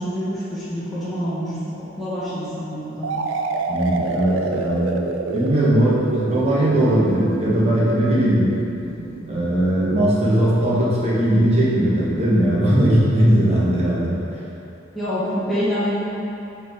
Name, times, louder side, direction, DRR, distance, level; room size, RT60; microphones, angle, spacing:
voice 1, 0.0-3.1 14.9-16.0, equal, ahead, -13 dB, 1.5 m, -26 dB
sound 1, 3.0-10.7, right 3 dB, 75° right, 0.4 m, -29 dB
voice 2, 3.7-5.0 5.3-8.5 9.3-14.2, right 1 dB, 35° right, -7 dB, 1.3 m, -19 dB
5.4 x 4.3 x 4.6 m, 2.8 s
head